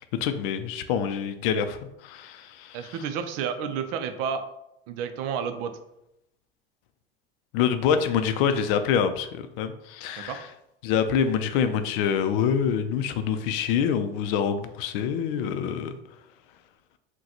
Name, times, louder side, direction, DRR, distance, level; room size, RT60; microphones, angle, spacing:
voice 1, 0.2-3.0 7.5-10.5 10.8-16.0, left 7 dB, 65° left, 10 dB, 0.4 m, -26 dB
voice 2, 2.7-4.4 4.9-5.7 10.2-10.4, right 7 dB, 55° right, 9 dB, 0.5 m, -31 dB
3.8 x 2.2 x 2.9 m, 0.83 s
hypercardioid pair, 90°, 29 cm